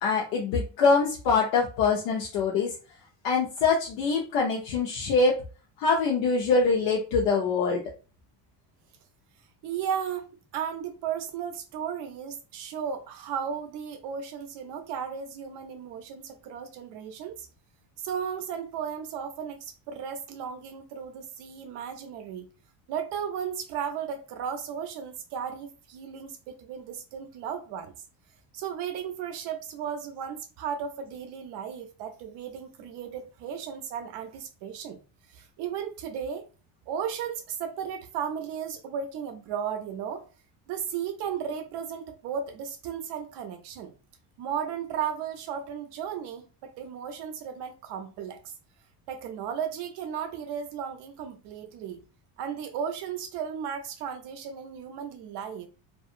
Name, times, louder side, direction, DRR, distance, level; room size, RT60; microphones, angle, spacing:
voice 1, 0.0-2.7 3.2-5.4 5.8-7.8, left 4 dB, 85° left, 0.8 m, -24 dB
voice 2, 9.6-17.5 18.0-22.5 22.9-27.9 28.5-35.0 35.3-36.5 36.9-40.2 40.7-43.9 44.4-46.4 46.8-48.5 49.1-52.0 52.4-55.7, right 8 dB, 65° right, 0.5 m, -35 dB
2.7 x 2.5 x 2.4 m
cardioid pair, 150°, 45 cm